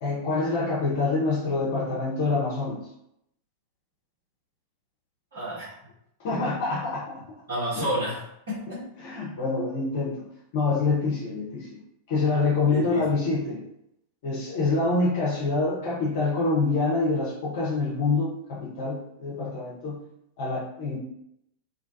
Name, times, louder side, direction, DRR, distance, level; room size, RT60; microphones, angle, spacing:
voice 1, 0.0-2.8 6.2-7.2 7.8-7.9 9.0-10.1 10.5-11.8 12.1-13.6 14.2-20.0 20.4-21.0, left 3 dB, 55° left, -5 dB, 0.6 m, -26 dB
voice 2, 5.3-5.7 7.5-8.9 12.7-13.1, equal, 65° right, -12 dB, 1.3 m, -30 dB
2.6 x 2.2 x 2.6 m, 0.76 s
figure-of-eight pair, 90°, 0 cm